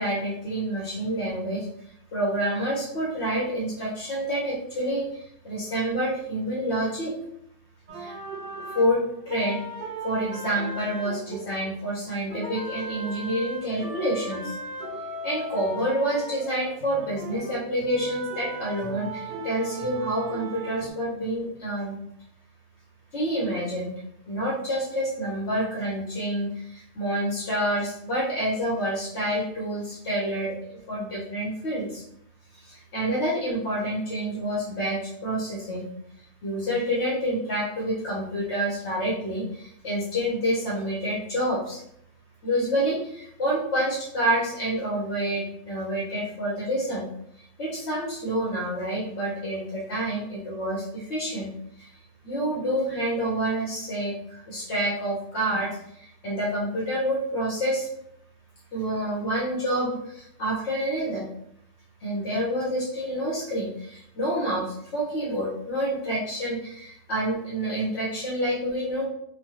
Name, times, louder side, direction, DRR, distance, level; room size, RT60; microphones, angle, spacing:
voice 1, 0.0-1.7 2.1-7.1 8.0-8.1 8.7-9.7 10.0-14.5 15.2-22.0 23.1-23.9 24.3-30.6 30.9-32.0 32.5-35.9 36.4-41.8 42.4-47.1 47.6-51.5 51.8-51.9 52.2-55.7 55.9-57.9 58.7-61.3 62.0-69.1, right 1 dB, 65° left, -5 dB, 1.1 m, -28 dB
sound 1, 7.9-12.0 12.3-20.9, right 1 dB, 55° right, 0.5 m, -37 dB
3.1 x 2.1 x 2.9 m, 0.71 s
omnidirectional pair, 1.3 m